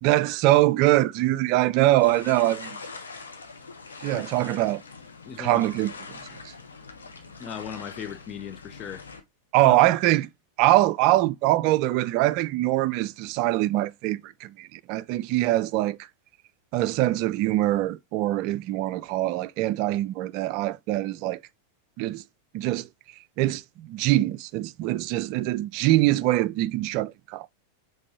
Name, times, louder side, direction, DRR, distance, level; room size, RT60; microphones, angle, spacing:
voice 1, 0.0-2.8 4.0-4.8 5.4-6.2 9.5-10.3 10.6-16.0 16.7-21.4 22.0-22.2 22.5-22.9 23.4-27.5, right 16 dB, 45° right, 0.3 m, -23 dB
sound 1, 2.0-9.2, left 4 dB, 75° left, 0.9 m, -43 dB
voice 2, 4.1-4.6 5.2-5.6 7.4-9.0 9.6-9.8, left 8 dB, 30° left, 0.4 m, -38 dB
5.2 x 3.7 x 2.6 m
figure-of-eight pair, 90°, 0 cm